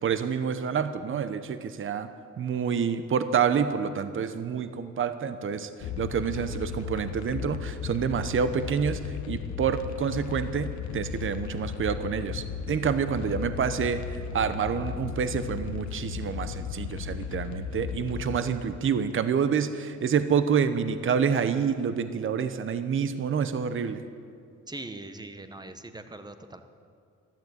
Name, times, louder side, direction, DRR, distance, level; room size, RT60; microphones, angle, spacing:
voice 1, 0.0-2.1 2.4-9.0 9.3-24.0, right 7 dB, 40° right, 11 dB, 0.8 m, -28 dB
sound 1, 5.8-18.4, left 7 dB, 70° left, 0.9 m, -35 dB
voice 2, 24.7-26.6, right 2 dB, 15° right, 8 dB, 1.1 m, -41 dB
13.5 x 12.0 x 8.0 m, 2.3 s
cardioid pair, 90°, 30 cm